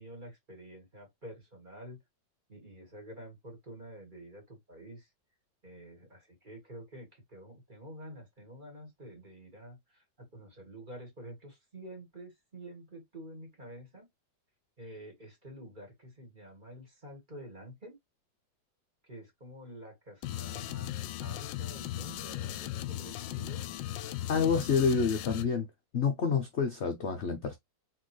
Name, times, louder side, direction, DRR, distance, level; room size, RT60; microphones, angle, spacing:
voice 1, 0.0-2.0 2.5-5.1 5.6-14.1 14.8-18.0 19.1-23.6, right 1 dB, 25° right, 2.0 m, -48 dB
sound 1, 20.2-25.5, left 13 dB, 75° left, 1.2 m, -37 dB
voice 2, 24.3-25.7 25.9-27.5, left 5 dB, 55° left, 0.7 m, -28 dB
4.2 x 4.0 x 3.2 m
omnidirectional pair, 2.1 m